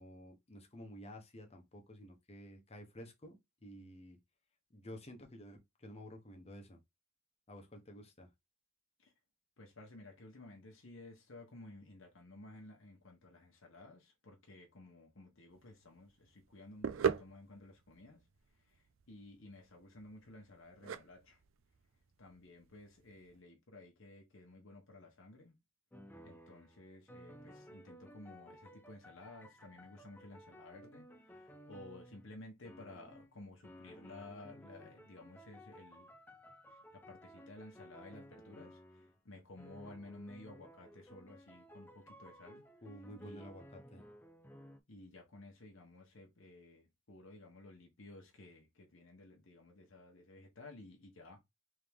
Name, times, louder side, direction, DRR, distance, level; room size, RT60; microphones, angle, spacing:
voice 1, 0.0-4.2 4.7-6.8 7.5-8.3 42.8-44.0, equal, 30° left, 1.0 m, -52 dB
voice 2, 9.6-18.3 18.5-21.4 22.2-25.6 26.2-36.1 36.7-42.7 43.2-43.5 44.9-51.4, left 2 dB, 70° left, 1.1 m, -55 dB
sound 1, 15.5-23.4, right 7 dB, 70° right, 0.4 m, -41 dB
sound 2, 25.9-32.4 32.7-33.4 33.6-39.2 39.6-44.8, equal, 10° left, 0.4 m, -56 dB
3.7 x 3.5 x 3.5 m
head